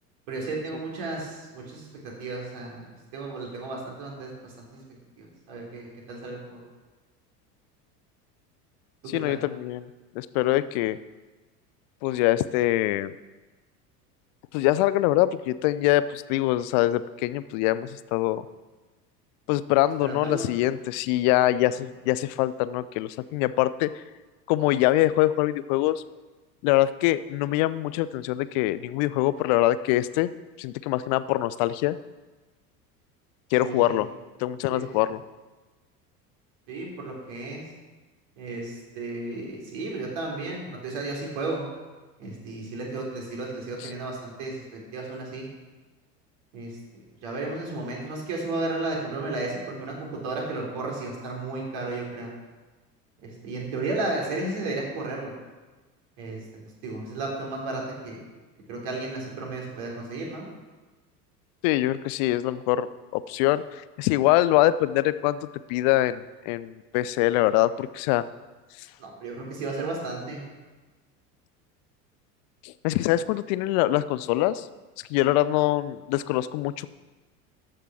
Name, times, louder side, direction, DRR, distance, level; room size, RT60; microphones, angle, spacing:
voice 1, 0.3-1.9 2.2-2.9 3.1-4.8 5.2-6.6 9.0-9.4 20.0-20.5 33.6-34.0 34.7-34.9 36.7-37.6 38.4-41.7 42.2-45.5 46.5-46.7 47.2-52.3 53.2-55.3 56.2-56.4 56.8-58.2 58.7-60.5 69.0-70.4, right 2 dB, 50° right, -2 dB, 3.7 m, -33 dB
voice 2, 9.1-9.9 10.1-11.0 12.0-13.1 14.5-18.4 19.5-24.0 24.5-26.0 26.6-30.3 30.6-32.0 33.5-34.1 34.4-35.2 43.8-43.9 61.6-62.9 63.1-68.2 68.8-68.9 72.6-74.7 75.1-76.9, left 15 dB, 30° left, 15 dB, 0.4 m, -24 dB
14.0 x 6.7 x 6.0 m, 1.3 s
figure-of-eight pair, 75°, 48 cm